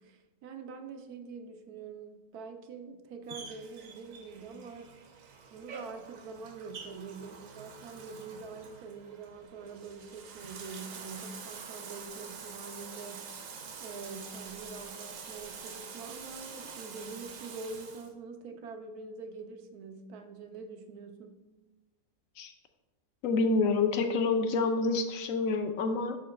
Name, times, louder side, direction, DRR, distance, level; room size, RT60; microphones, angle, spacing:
voice 1, 0.0-4.9 5.5-13.3 13.8-21.4, right 4 dB, 85° right, 7 dB, 1.2 m, -45 dB
Bathtub (filling or washing), 3.3-18.1, right 5 dB, 70° right, 1.1 m, -46 dB
voice 2, 23.2-26.2, left 3 dB, 65° left, 7 dB, 1.1 m, -27 dB
7.3 x 3.0 x 5.9 m, 1.1 s
omnidirectional pair, 1.6 m